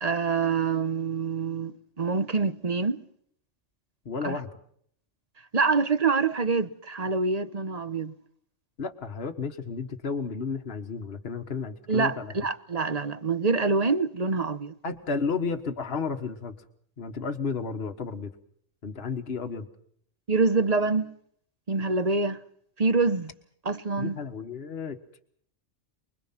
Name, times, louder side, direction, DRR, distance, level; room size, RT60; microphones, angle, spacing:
voice 1, 0.0-3.0 4.2-4.4 5.5-8.1 11.9-14.7 20.3-21.1 21.7-22.4 22.8-23.3 23.6-24.2, right 4 dB, 35° right, 1.0 m, -26 dB
voice 2, 4.1-4.5 8.8-12.3 14.8-16.6 17.0-18.3 18.8-19.7 24.0-25.0, left 5 dB, 50° left, 1.7 m, -32 dB
24.5 x 22.0 x 5.9 m
omnidirectional pair, 1.3 m